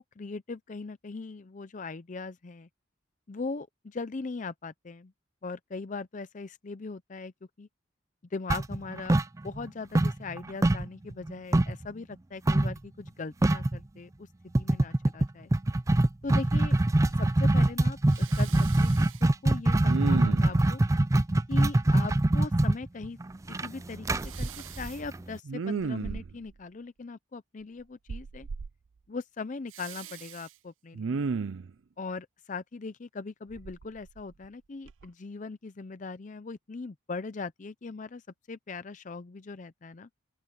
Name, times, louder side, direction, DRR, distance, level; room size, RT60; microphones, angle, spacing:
voice 1, 0.0-2.7 3.3-5.1 5.4-7.3 7.6-7.7 8.3-9.2 9.4-14.3 14.6-15.5 16.2-16.8 17.2-18.9 19.2-20.8 21.5-23.2 23.5-24.5 24.8-28.5 29.1-31.3 32.0-38.2 38.5-40.1, left 4 dB, 40° left, 0.5 m, -40 dB
sound 1, 8.5-9.7 9.9-11.8 12.5-12.8 13.1-13.2 13.4-13.8 14.5-25.3, right 1 dB, 15° right, 0.4 m, -24 dB
Respiratory sounds, 15.7-15.8 16.2-16.8 17.0-17.8 18.1-19.2 19.8-20.7 24.3-24.9 25.4-26.5 28.1-28.7 29.7-30.4 30.9-31.7 33.5-34.5 34.9-35.1, right 4 dB, 80° right, 0.5 m, -35 dB
open air
head